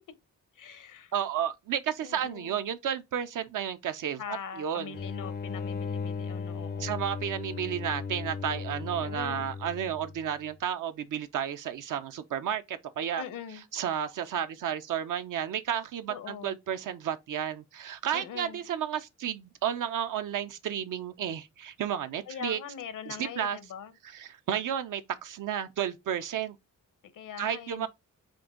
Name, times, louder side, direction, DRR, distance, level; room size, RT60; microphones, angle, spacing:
voice 1, 0.5-1.1 2.0-2.6 4.2-7.0 9.0-9.5 13.2-13.6 16.1-16.6 18.1-18.6 22.3-23.9 27.1-27.9, left 8 dB, 80° left, 0.9 m, -42 dB
voice 2, 1.1-4.2 4.6-5.0 6.8-13.2 13.7-22.6 23.1-23.6 24.0-26.6 27.4-27.9, right 9 dB, 80° right, 0.6 m, -32 dB
sound 1, 4.9-10.3, left 5 dB, 35° left, 0.4 m, -36 dB
5.2 x 2.6 x 3.7 m
wide cardioid pair, 125°, 31 cm